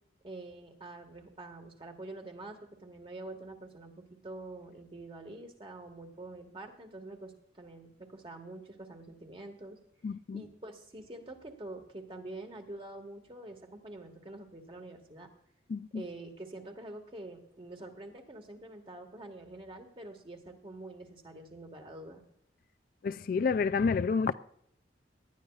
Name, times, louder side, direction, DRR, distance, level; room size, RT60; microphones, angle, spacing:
voice 1, 0.2-9.8 10.3-15.3 15.9-22.2, right 2 dB, 30° right, 1.7 m, -46 dB
voice 2, 10.0-10.4 15.7-16.0 23.0-24.3, left 5 dB, 50° left, 0.3 m, -29 dB
18.5 x 11.5 x 2.4 m
head